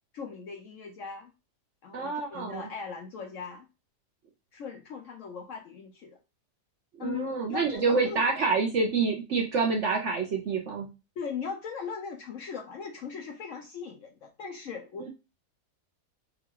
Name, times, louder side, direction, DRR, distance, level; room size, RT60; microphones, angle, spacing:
voice 1, 0.1-1.3 1.8-3.7 4.5-6.2 7.0-8.3 11.2-15.1, left 6 dB, 70° left, 3 dB, 0.8 m, -39 dB
voice 2, 1.9-2.7 7.0-10.9 15.0-15.1, right 4 dB, 60° right, 1 dB, 0.8 m, -27 dB
3.7 x 2.3 x 4.5 m, 0.27 s
omnidirectional pair, 1.8 m